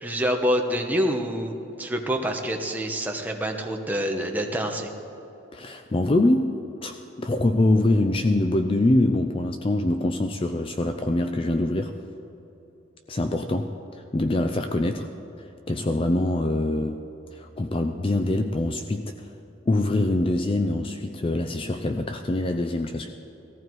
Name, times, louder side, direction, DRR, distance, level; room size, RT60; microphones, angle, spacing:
voice 1, 0.0-4.9, equal, 10° right, 2 dB, 1.1 m, -26 dB
voice 2, 5.5-6.6 6.8-11.9 13.1-15.1 15.4-17.1 17.3-19.3 19.7-23.1, left 2 dB, 25° left, 7 dB, 0.4 m, -24 dB
18.0 x 14.5 x 4.7 m, 3.0 s
head